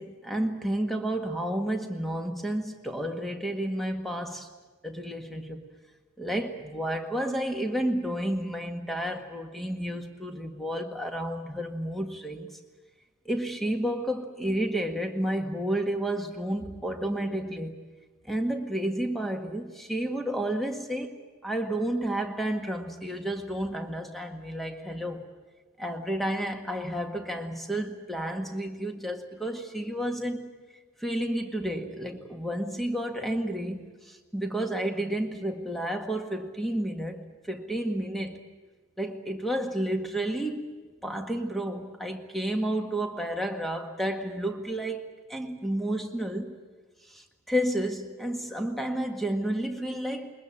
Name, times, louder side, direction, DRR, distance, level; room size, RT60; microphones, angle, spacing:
voice 1, 0.0-4.5 4.8-5.6 6.2-12.6 13.3-17.8 18.3-21.2 21.4-25.3 25.8-30.5 31.0-38.4 39.0-40.7 41.0-46.6 47.1-50.3, right 1 dB, ahead, 1.8 m, -31 dB
22.0 x 20.5 x 8.9 m
head